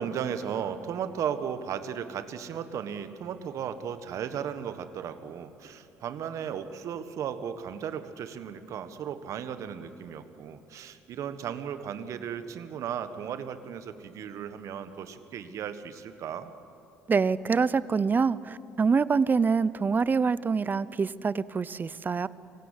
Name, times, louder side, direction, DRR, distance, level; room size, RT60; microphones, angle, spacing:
voice 1, 0.0-16.5, right 8 dB, 60° right, 10 dB, 1.5 m, -35 dB
voice 2, 17.1-22.3, right 5 dB, 30° right, 19 dB, 0.7 m, -25 dB
25.0 x 16.5 x 10.0 m, 3.0 s
hypercardioid pair, 65°, 6 cm